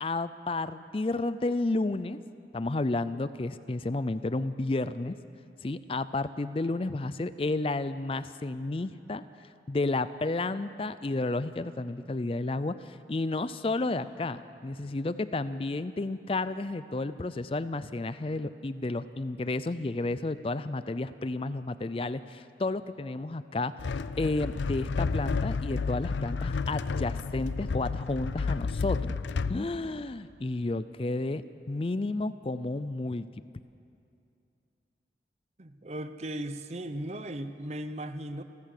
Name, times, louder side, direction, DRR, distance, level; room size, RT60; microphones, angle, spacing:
voice 1, 0.0-2.2 2.5-5.2 5.6-23.7 24.2-29.2 29.5-33.3, left 2 dB, 30° left, 14 dB, 0.4 m, -31 dB
sound 1, 23.8-29.6, left 4 dB, 90° left, 0.5 m, -31 dB
voice 2, 35.6-38.4, right 1 dB, 35° right, 10 dB, 0.8 m, -37 dB
29.0 x 14.0 x 6.6 m, 2.6 s
head